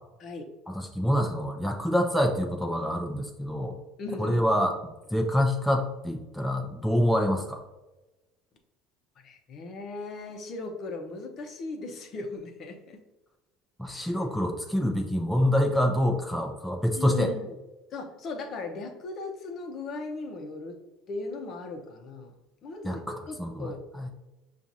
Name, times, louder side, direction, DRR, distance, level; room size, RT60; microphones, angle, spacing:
voice 1, 0.7-3.8 4.2-4.7 5.1-7.6 13.8-17.3 22.8-24.1, equal, ahead, 1 dB, 0.5 m, -26 dB
voice 2, 4.0-4.5 9.2-13.0 13.9-14.2 16.9-17.5 17.9-20.8 21.1-22.3 22.6-23.8, left 3 dB, 50° left, 4 dB, 0.7 m, -38 dB
5.8 x 2.4 x 2.7 m, 1.0 s
supercardioid pair, 100°, 0 cm